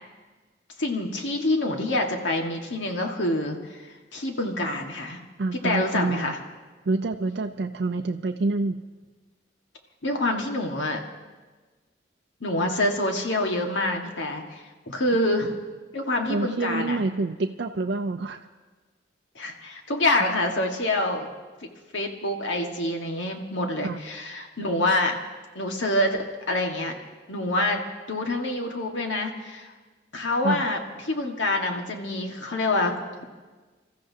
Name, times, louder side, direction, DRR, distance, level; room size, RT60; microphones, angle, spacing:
voice 1, 0.8-3.8 4.1-5.2 5.6-6.4 10.0-11.0 12.4-15.6 15.9-17.0 19.4-21.3 21.9-25.2 25.6-26.9 27.3-27.8 28.1-29.7 30.1-33.0, left 1 dB, 85° left, 2 dB, 1.7 m, -26 dB
voice 2, 5.4-6.3 6.9-8.8 16.3-18.4 23.8-24.0 30.4-30.6, right 3 dB, 65° right, 4 dB, 0.5 m, -27 dB
27.5 x 14.0 x 2.8 m, 1.3 s
head